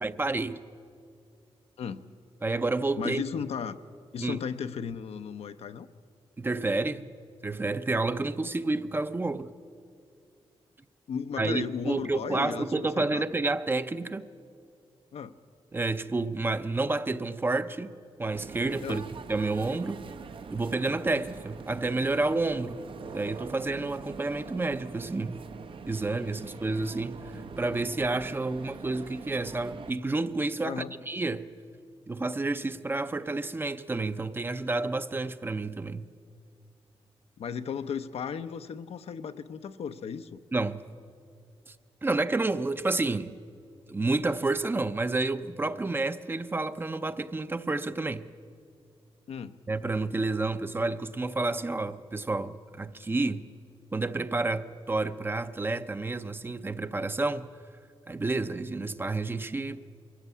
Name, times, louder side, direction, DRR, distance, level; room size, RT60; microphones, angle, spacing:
voice 1, 0.0-0.6 2.4-3.2 4.2-4.4 6.4-7.1 7.4-9.5 11.4-14.3 15.7-19.0 19.3-20.0 20.5-25.5 25.9-31.5 32.1-36.1 40.5-40.8 41.7-41.8 42.0-43.3 43.9-48.3 49.7-53.5 53.9-57.5 58.1-59.8, right 3 dB, 20° right, 0.6 m, -30 dB
voice 2, 3.0-3.8 4.1-5.9 11.1-13.2 15.1-15.4 18.8-19.0 30.6-30.9 37.4-40.4 49.3-49.6, left 7 dB, 75° left, 0.7 m, -35 dB
sound 1, 18.3-29.9, right 5 dB, 55° right, 0.7 m, -44 dB
22.5 x 16.0 x 8.3 m
wide cardioid pair, 130°, 10 cm